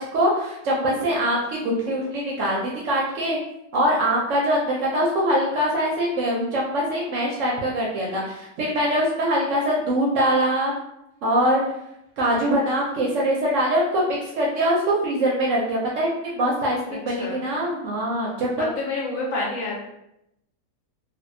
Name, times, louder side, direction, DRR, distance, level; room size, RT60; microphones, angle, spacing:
voice 1, 0.0-3.4 3.7-10.7 11.2-11.6 12.2-18.6, equal, 70° right, -3 dB, 0.8 m, -23 dB
voice 2, 16.9-17.4 18.6-19.8, left 2 dB, 65° left, -3 dB, 1.0 m, -29 dB
2.6 x 2.2 x 2.5 m, 0.81 s
omnidirectional pair, 1.6 m